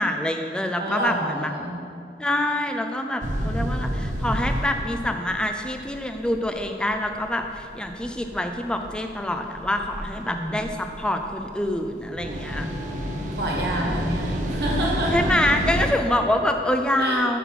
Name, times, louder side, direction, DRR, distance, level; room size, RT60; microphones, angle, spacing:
voice 1, 0.0-1.5 2.2-12.7 13.8-14.0 15.1-17.4, left 1 dB, 5° left, 5 dB, 0.4 m, -26 dB
voice 2, 0.8-1.8 3.4-3.9 10.1-10.7 12.5-15.1 17.0-17.2, right 1 dB, 60° right, -3 dB, 1.4 m, -29 dB
sound 1, 3.2-15.9, equal, 45° right, 0.6 m, -30 dB
5.8 x 5.5 x 5.9 m, 2.4 s
head